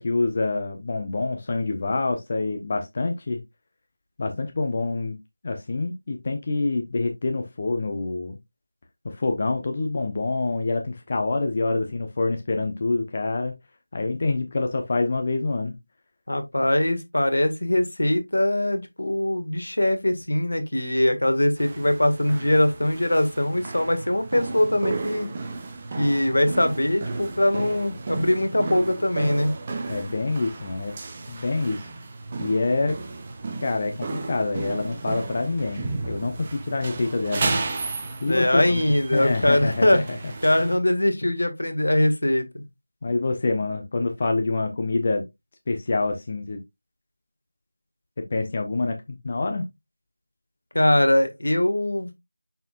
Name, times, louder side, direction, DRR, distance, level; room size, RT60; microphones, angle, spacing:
voice 1, 0.0-3.4 4.2-5.2 5.4-8.4 9.0-13.5 13.9-15.8 29.9-30.9 31.3-31.9 32.4-33.0 33.6-37.7 38.2-38.8 39.1-40.0 43.0-45.3 45.7-46.6 48.2-49.0 49.2-49.7, left 3 dB, 30° left, 0.9 m, -26 dB
voice 2, 16.3-25.3 26.0-29.5 38.3-40.0 40.4-42.6 50.7-52.1, left 1 dB, 70° left, 1.8 m, -22 dB
sound 1, 21.6-40.8, right 3 dB, 20° right, 0.9 m, -33 dB
6.8 x 6.1 x 2.5 m
figure-of-eight pair, 170°, 0 cm